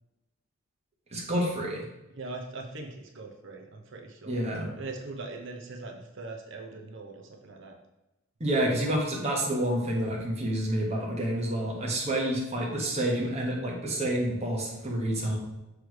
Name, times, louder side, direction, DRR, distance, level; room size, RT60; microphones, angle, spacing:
voice 1, 1.1-1.8 4.3-4.7 8.4-15.4, right 1 dB, 30° right, -3 dB, 1.2 m, -28 dB
voice 2, 2.2-4.5 4.8-7.8, right 3 dB, 55° right, 2 dB, 0.8 m, -41 dB
6.3 x 3.3 x 4.7 m, 0.99 s
head